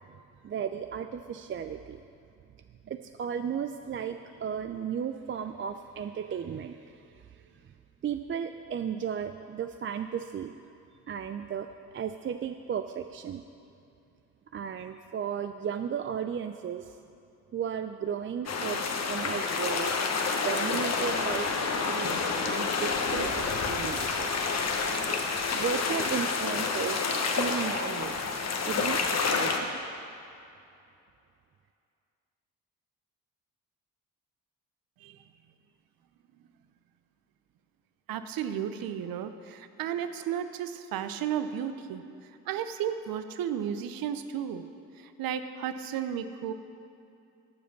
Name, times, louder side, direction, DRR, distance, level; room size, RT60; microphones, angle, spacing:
voice 1, 0.4-2.0 2.9-7.4 8.0-10.5 11.1-13.4 14.5-17.0 17.5-19.9 20.4-24.5 25.5-27.0 27.3-28.2 28.7-29.0 29.3-29.8, right 8 dB, 35° right, 8 dB, 0.4 m, -35 dB
sound 1, 18.5-29.6, left 4 dB, 45° left, 1.1 m, -29 dB
voice 2, 38.1-42.0 42.5-44.6 45.2-46.5, right 9 dB, 65° right, 10 dB, 0.7 m, -33 dB
14.0 x 5.0 x 5.9 m, 2.6 s
hypercardioid pair, 50°, 37 cm